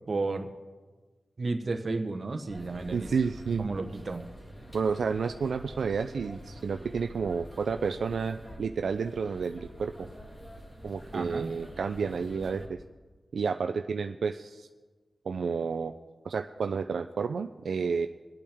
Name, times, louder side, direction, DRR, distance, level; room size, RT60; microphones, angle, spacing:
voice 1, 0.1-0.5 1.4-3.1 3.6-4.3 11.1-11.5, right 3 dB, 50° right, 6 dB, 1.0 m, -32 dB
sound 1, 2.5-12.7, equal, 25° left, 2.1 m, -46 dB
voice 2, 2.9-3.7 4.7-10.1 10.8-12.8 13.3-14.7 15.3-15.9 16.2-18.1, right 5 dB, 85° right, 7 dB, 0.3 m, -30 dB
21.5 x 8.5 x 3.5 m, 1.3 s
wide cardioid pair, 95°, 0 cm